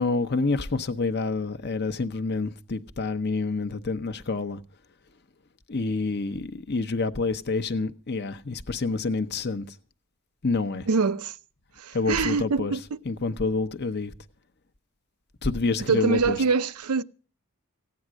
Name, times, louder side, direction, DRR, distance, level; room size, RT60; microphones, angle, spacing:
voice 1, 0.0-4.6 5.7-9.8 10.4-10.9 11.9-12.8 13.0-14.1 15.4-16.4, left 3 dB, 50° left, 0.8 m, -28 dB
voice 2, 10.9-11.3 11.8-12.8 15.9-17.0, right 4 dB, 90° right, 0.6 m, -24 dB
16.0 x 9.5 x 6.2 m
head